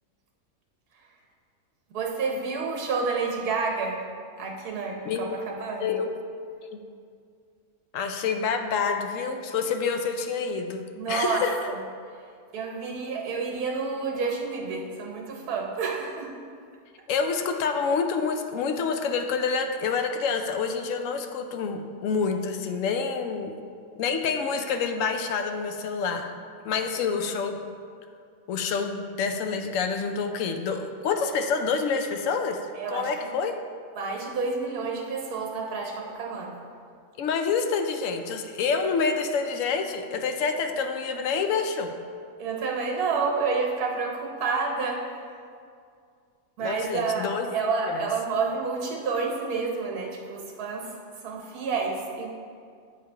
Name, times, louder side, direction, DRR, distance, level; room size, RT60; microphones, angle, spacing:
voice 1, 1.9-4.0 4.4-5.9 10.9-11.8 12.5-16.3 26.9-27.1 32.8-33.3 34.0-36.6 42.4-45.0 46.6-50.9 51.2-52.3, right 4 dB, 70° right, 0 dB, 1.5 m, -29 dB
voice 2, 5.0-5.4 5.8-6.2 6.7-6.8 7.9-10.8 11.1-11.6 17.1-23.6 24.0-26.3 26.6-27.6 28.5-32.6 32.9-33.5 37.2-41.9 46.6-47.5 47.8-48.1, left 5 dB, 65° left, 5 dB, 0.8 m, -27 dB
8.6 x 3.3 x 4.4 m, 2.2 s
omnidirectional pair, 1.7 m